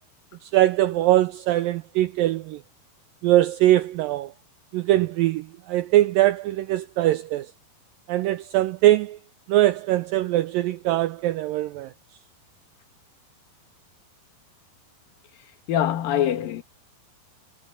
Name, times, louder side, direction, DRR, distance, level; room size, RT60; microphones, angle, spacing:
voice 1, 0.4-2.6 3.2-4.3 4.7-7.5 8.1-9.2 9.5-11.9, right 14 dB, 80° right, 2.1 m, -21 dB
voice 2, 15.7-16.6, left 10 dB, 65° left, 3.3 m, -23 dB
omnidirectional pair, 4.5 m